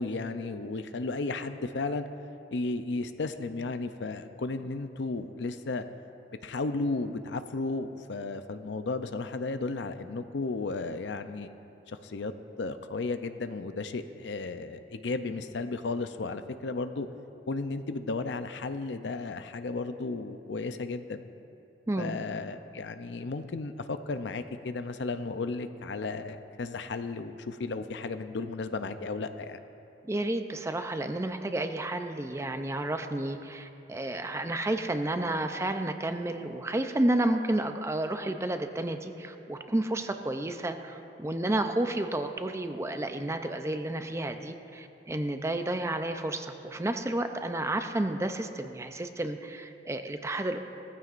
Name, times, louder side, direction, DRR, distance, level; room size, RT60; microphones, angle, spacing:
voice 1, 0.0-2.1 2.5-5.8 6.4-11.5 11.9-12.3 12.6-17.1 17.5-21.3 22.0-29.6, left 3 dB, 75° left, 10 dB, 0.5 m, -34 dB
voice 2, 21.9-22.2 30.0-50.6, right 1 dB, 15° right, 7 dB, 0.5 m, -31 dB
17.5 x 14.5 x 2.5 m, 2.8 s
head